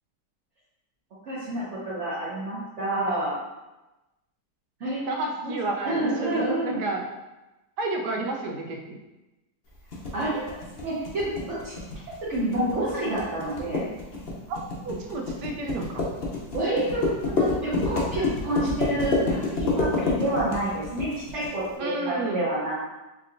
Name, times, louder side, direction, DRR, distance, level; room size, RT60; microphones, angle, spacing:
voice 1, 1.2-3.3 4.8-5.0 5.4-5.5 5.8-6.8 10.1-11.7 12.3-13.8 16.5-22.8, right 1 dB, 50° right, -9 dB, 1.1 m, -28 dB
voice 2, 5.1-7.0 7.8-9.0 14.5-16.1 21.8-22.4, right 2 dB, 90° right, 1 dB, 1.3 m, -31 dB
sound 1, 9.9-21.5, left 3 dB, 50° left, 0.7 m, -28 dB
4.6 x 2.8 x 2.5 m, 1.0 s
omnidirectional pair, 1.8 m